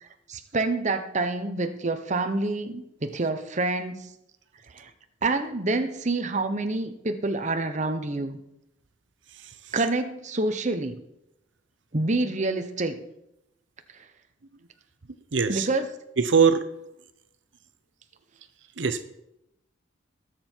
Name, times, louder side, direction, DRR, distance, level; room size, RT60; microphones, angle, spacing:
voice 1, 0.3-4.1 4.7-4.9 5.2-8.4 9.7-11.0 11.9-13.0 15.5-15.9, right 2 dB, 40° right, 8 dB, 1.0 m, -27 dB
voice 2, 15.3-15.7 16.2-16.6 18.8-19.0, right 5 dB, 70° right, 10 dB, 0.8 m, -21 dB
20.0 x 7.8 x 4.6 m, 0.84 s
head